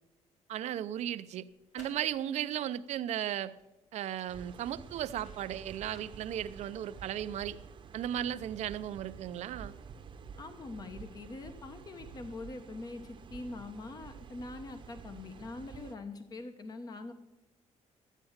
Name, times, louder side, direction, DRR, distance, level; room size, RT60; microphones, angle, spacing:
voice 1, 0.5-1.4 1.7-3.5 3.9-7.6 7.9-9.7, right 11 dB, 70° right, 12 dB, 0.6 m, -35 dB
sound 1, 1.5-7.5, left 2 dB, 75° left, 4.4 m, -61 dB
sound 2, 4.3-16.0, right 6 dB, 45° right, 0.9 m, -50 dB
voice 2, 10.4-17.1, left 3 dB, 35° left, 8 dB, 1.1 m, -43 dB
13.0 x 9.1 x 7.2 m, 0.93 s
cardioid pair, 140°, 12 cm